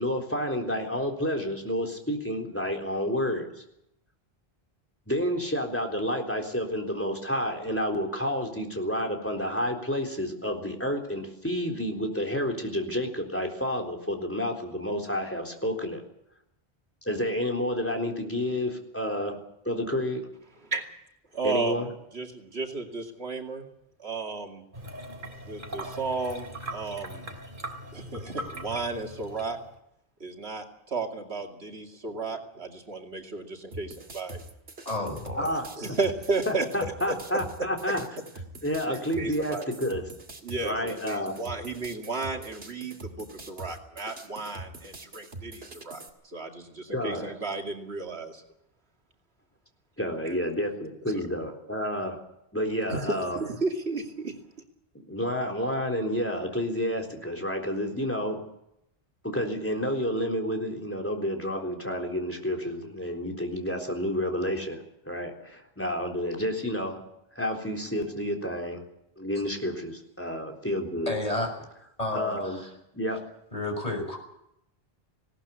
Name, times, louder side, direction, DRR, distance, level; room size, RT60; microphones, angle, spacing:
voice 1, 0.0-3.6 5.1-16.0 17.1-19.4 19.7-20.2 21.4-21.9 35.4-36.0 36.5-38.0 38.6-40.1 40.6-41.4 46.9-47.3 50.0-52.2 52.5-53.4 55.1-58.4 59.2-67.0 67.4-68.8 69.2-71.2 72.1-72.6 72.9-73.2, equal, 10° left, 4 dB, 3.8 m, -30 dB
voice 2, 21.3-21.8 22.1-23.7 24.0-24.6 25.4-27.3 27.9-29.6 30.2-34.4 35.0-35.1 35.4-36.7 37.1-38.0 38.9-39.7 40.4-48.4 50.2-50.3 52.9-54.3, right 3 dB, 90° right, 3 dB, 2.8 m, -33 dB
sound 1, 24.7-29.8, right 1 dB, 55° right, 3.3 m, -40 dB
sound 2, 33.7-46.1, right 2 dB, 70° right, 2.7 m, -44 dB
voice 3, 34.9-35.5 71.1-71.5 72.0-72.7 73.5-74.2, left 2 dB, 35° left, 2 dB, 6.0 m, -31 dB
19.5 x 18.0 x 8.3 m, 0.79 s
omnidirectional pair, 1.0 m